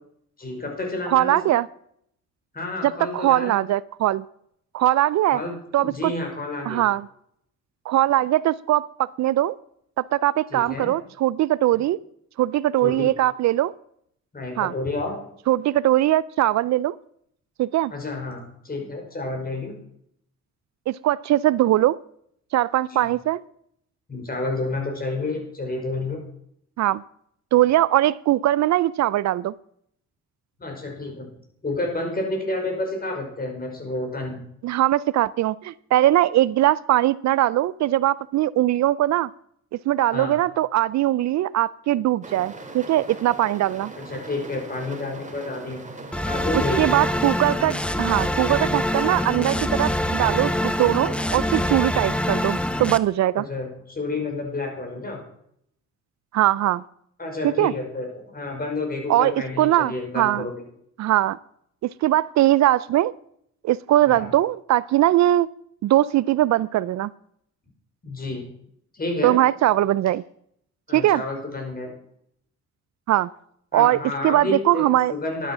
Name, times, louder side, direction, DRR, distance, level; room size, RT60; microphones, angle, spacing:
voice 1, 0.4-1.4 2.5-3.6 5.3-6.8 10.5-10.9 12.8-13.1 14.3-15.2 17.9-19.8 22.9-23.1 24.1-26.2 30.6-31.3 31.6-34.4 40.1-40.3 44.0-45.8 46.2-46.9 53.4-55.2 57.2-60.5 64.1-64.3 68.0-68.4 68.9-69.3 70.9-71.9 73.7-75.5, left 2 dB, 30° left, 2 dB, 5.5 m, -30 dB
voice 2, 1.1-1.7 2.8-4.2 4.7-5.4 5.7-6.1 6.7-7.1 7.9-9.6 10.0-12.0 12.4-13.7 14.6-14.7 15.5-17.0 17.6-17.9 20.9-22.0 22.5-23.4 26.8-27.0 27.5-29.5 34.6-39.3 39.9-43.9 46.5-53.4 56.3-56.8 57.4-57.7 59.1-60.5 61.0-61.4 62.0-63.1 63.6-65.5 65.8-67.1 69.2-70.2 70.9-71.2 73.1-73.3 73.7-75.1, right 14 dB, 65° right, 20 dB, 0.4 m, -21 dB
sound 1, 42.2-51.6, right 3 dB, 25° right, 2.4 m, -40 dB
sound 2, 46.1-53.0, left 1 dB, 5° left, 0.7 m, -25 dB
12.0 x 9.1 x 6.1 m, 0.69 s
cardioid pair, 90°, 30 cm